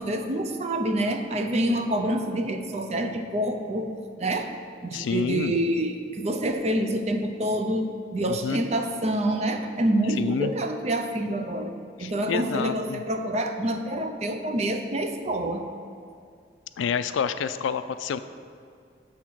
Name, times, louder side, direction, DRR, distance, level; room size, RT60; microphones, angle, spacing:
voice 1, 0.0-3.9 4.2-4.5 4.8-15.7, right 1 dB, 35° right, 6 dB, 0.4 m, -27 dB
voice 2, 4.9-5.6 8.3-8.6 10.2-10.5 12.0-13.0 16.8-18.2, left 6 dB, 90° left, 12 dB, 0.3 m, -28 dB
7.7 x 3.6 x 5.9 m, 2.3 s
head